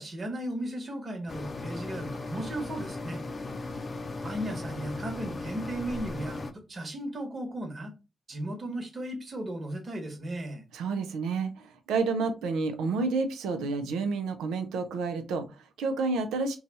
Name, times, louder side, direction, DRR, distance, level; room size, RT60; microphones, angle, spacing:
voice 1, 0.0-3.2 4.2-7.9 8.3-10.6, right 1 dB, 50° right, 1.2 m, -36 dB
sound 1, 1.3-6.5, left 2 dB, 45° left, 0.5 m, -37 dB
voice 2, 10.7-16.6, right 4 dB, 90° right, 0.5 m, -30 dB
2.7 x 2.3 x 4.0 m
supercardioid pair, 45°, 0 cm